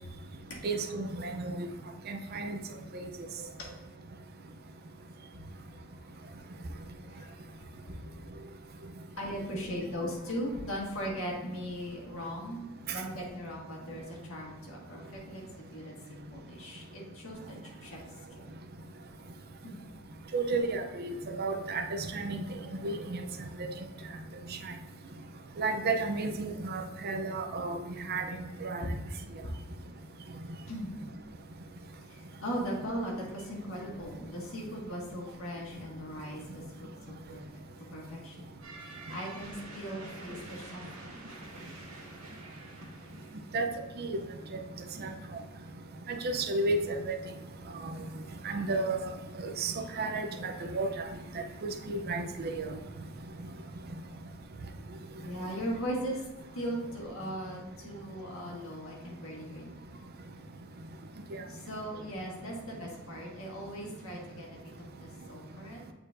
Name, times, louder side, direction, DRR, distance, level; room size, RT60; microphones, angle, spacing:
voice 1, 0.6-1.7 2.1-2.6 20.3-22.4 22.8-23.2 25.6-27.8 28.1-28.3 28.6-28.9 43.5-43.7 44.0-44.2 45.0-45.1 46.1-46.8 47.1-47.2 48.4-49.0 49.6-50.9 51.6-52.7 61.3-61.4, right 3 dB, 45° right, 5 dB, 0.5 m, -32 dB
voice 2, 7.1-7.6 8.1-8.5 9.2-17.5 17.8-18.0 18.3-18.4 19.6-19.9 30.7-31.0 32.1-37.4 37.9-38.4 38.8-41.3 55.2-56.3 56.5-59.8 61.5-65.8, equal, 70° left, -2 dB, 1.7 m, -39 dB
sound 1, 38.6-43.7, right 2 dB, 80° right, 1.8 m, -48 dB
8.5 x 4.4 x 2.6 m, 1.2 s
head